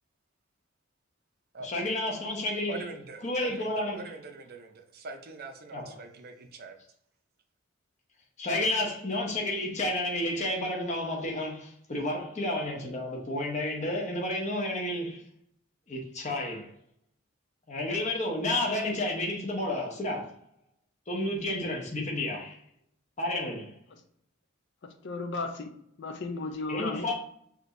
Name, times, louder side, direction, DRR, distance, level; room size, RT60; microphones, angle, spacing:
voice 1, 1.6-2.8 3.2-4.0 5.7-5.9 8.4-15.2 15.9-16.7 17.7-20.3 21.1-22.6 23.2-23.7 26.7-27.1, left 1 dB, 35° left, 1.0 m, -31 dB
voice 2, 2.7-6.8, right 3 dB, 50° right, 0.6 m, -43 dB
voice 3, 24.8-27.1, left 3 dB, 60° left, 0.5 m, -35 dB
6.1 x 2.9 x 2.6 m
head